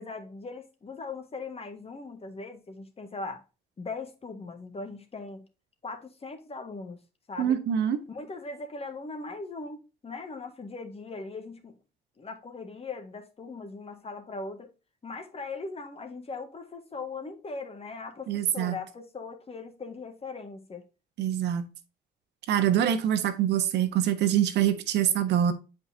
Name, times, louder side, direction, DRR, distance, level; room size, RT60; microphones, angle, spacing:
voice 1, 0.0-3.4 3.8-5.5 5.8-7.0 7.3-7.6 8.1-9.8 10.0-11.8 12.2-14.7 15.0-20.8, left 3 dB, 35° left, 1.7 m, -39 dB
voice 2, 7.4-8.0 18.3-18.8 21.2-21.7 22.5-25.5, right 10 dB, 90° right, 1.1 m, -25 dB
8.2 x 5.0 x 2.7 m
cardioid pair, 95°, 17 cm